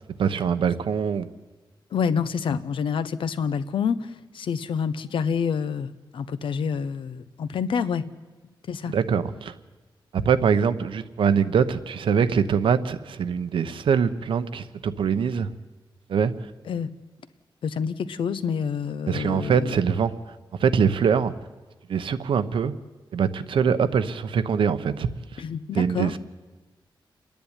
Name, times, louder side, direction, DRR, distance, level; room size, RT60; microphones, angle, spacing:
voice 1, 0.2-1.3 8.9-9.5 10.1-15.5 16.1-16.3 19.1-20.3 20.6-21.3 21.9-22.7 23.1-25.4 25.7-26.2, right 6 dB, 80° right, 11 dB, 0.9 m, -23 dB
voice 2, 1.9-8.1 8.7-8.9 16.7-16.9 17.6-19.8 25.4-26.1, left 6 dB, 80° left, 13 dB, 0.9 m, -27 dB
28.0 x 10.5 x 9.9 m, 1.2 s
wide cardioid pair, 180°, 9 cm